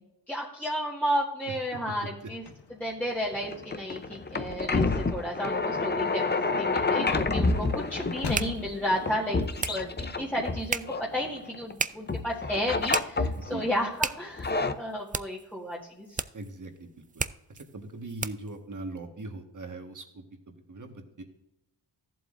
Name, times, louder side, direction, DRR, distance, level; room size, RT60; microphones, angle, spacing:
voice 1, 0.3-2.4 2.8-6.2 6.6-9.4 9.7-14.5 14.8-16.2, equal, 5° left, -5 dB, 1.6 m, -32 dB
voice 2, 1.7-2.3 9.4-9.5 13.3-13.7 16.3-17.2 17.5-21.2, right 2 dB, 45° right, 4 dB, 1.6 m, -41 dB
sound 1, 2.4-9.4, left 5 dB, 65° left, 1.2 m, -43 dB
sound 2, 3.3-11.7 12.1-13.7 14.2-14.7, left 3 dB, 25° left, 0.7 m, -29 dB
sound 3, 7.0-18.6, right 5 dB, 20° right, 0.3 m, -37 dB
14.0 x 7.7 x 2.6 m, 0.88 s
cardioid pair, 65°, 43 cm